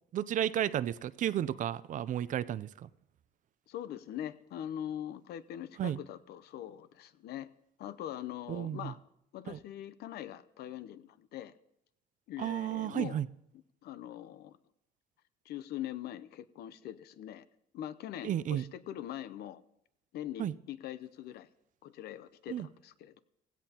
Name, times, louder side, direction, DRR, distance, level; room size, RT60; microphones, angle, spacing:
voice 1, 0.1-2.9 5.8-6.0 8.5-8.9 9.5-9.6 12.4-13.3 18.2-18.6 20.4-20.5 22.5-22.7, right 11 dB, 50° right, 17 dB, 0.5 m, -33 dB
voice 2, 3.7-7.5 7.8-9.0 9.3-11.5 12.3-13.2 13.8-14.6 15.4-17.4 17.7-19.6 20.1-21.5 21.8-23.2, left 11 dB, 70° left, 14 dB, 0.7 m, -42 dB
16.5 x 16.0 x 2.9 m, 0.79 s
cardioid pair, 110°, 17 cm